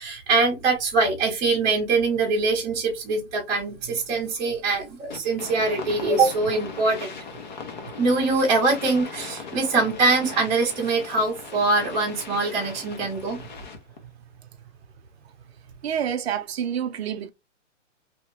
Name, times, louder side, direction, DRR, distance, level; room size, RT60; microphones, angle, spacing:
voice 1, 0.0-7.1 8.0-13.4, right 3 dB, 10° right, 0.7 m, -23 dB
sound 1, 5.1-14.0, left 4 dB, 40° left, 0.6 m, -39 dB
voice 2, 15.8-17.3, right 8 dB, 55° right, 0.5 m, -28 dB
2.9 x 2.1 x 3.2 m
hypercardioid pair, 170°, 37 cm